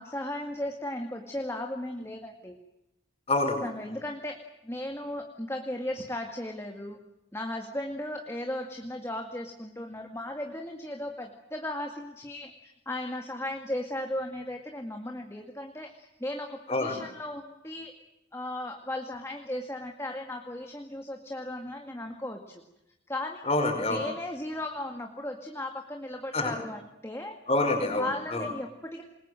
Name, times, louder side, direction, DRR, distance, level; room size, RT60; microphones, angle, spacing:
voice 1, 0.0-2.6 3.6-4.4 4.6-7.0 7.3-17.9 18.3-22.6 23.1-23.4 23.9-27.4 28.0-29.0, left 1 dB, 15° left, 3 dB, 2.1 m, -36 dB
voice 2, 3.3-3.6 16.7-17.0 23.5-24.0 26.3-26.5 27.5-28.5, left 2 dB, 35° left, 5 dB, 5.2 m, -26 dB
27.0 x 21.5 x 7.8 m, 0.88 s
head